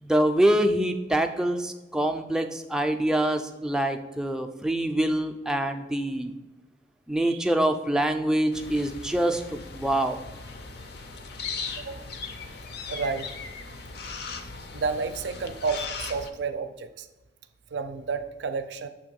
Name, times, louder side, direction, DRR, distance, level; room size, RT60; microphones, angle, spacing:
voice 1, 0.0-6.4 7.1-10.2, right 1 dB, 5° right, 5 dB, 0.3 m, -25 dB
sound 1, 8.5-16.3, left 4 dB, 60° left, 0.5 m, -38 dB
voice 2, 11.8-12.1 12.9-13.3 14.7-17.1 17.7-18.9, right 4 dB, 75° right, 10 dB, 0.4 m, -31 dB
6.9 x 3.0 x 5.2 m, 1.1 s
head